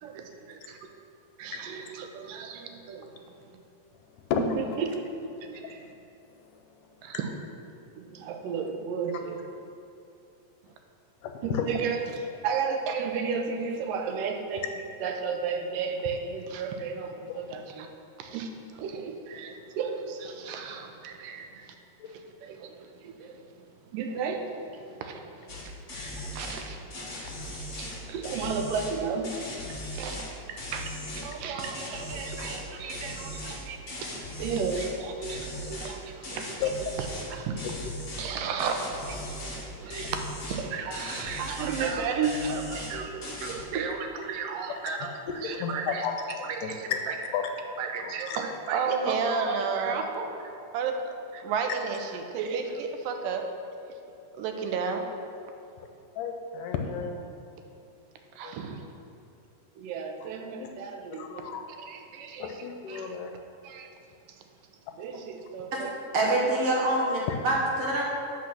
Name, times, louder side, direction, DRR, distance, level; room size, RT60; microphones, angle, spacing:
voice 1, 0.0-0.8 1.4-3.1 4.4-5.8 7.0-7.3 7.9-9.4 11.4-17.9 18.2-21.8 22.1-23.4 23.9-25.7 26.2-29.4 29.7-36.6 37.0-37.7 38.2-46.1 46.4-47.2 47.8-51.0 51.3-53.4 54.3-55.1 58.4-58.9 59.8-61.4 61.8-63.2 63.6-63.9 65.0-65.9 66.2-66.4, right 5 dB, 90° right, 4 dB, 2.3 m, -33 dB
voice 2, 11.2-11.6 17.3-17.4 22.0-22.1 36.6-36.7 45.4-47.0 47.3-47.5 48.0-48.4 56.2-57.2 58.4-58.5 60.6-60.7 61.2-61.6 62.4-63.3 67.3-67.4, left 8 dB, 75° left, 4 dB, 2.1 m, -32 dB
sound 1, 25.5-25.6 25.9-26.6 26.9-28.9 29.2-30.3 30.6-31.3 31.6-32.6 32.9-34.9 35.2-35.9 36.2-37.3 37.6-38.3 38.6-39.6 39.9-40.6 40.9-42.0 42.2-42.9 43.2-43.6, left 1 dB, 35° left, 1.2 m, -38 dB
voice 3, 66.1-68.0, right 1 dB, 60° right, -3 dB, 1.9 m, -25 dB
8.5 x 5.9 x 6.1 m, 2.6 s
omnidirectional pair, 3.9 m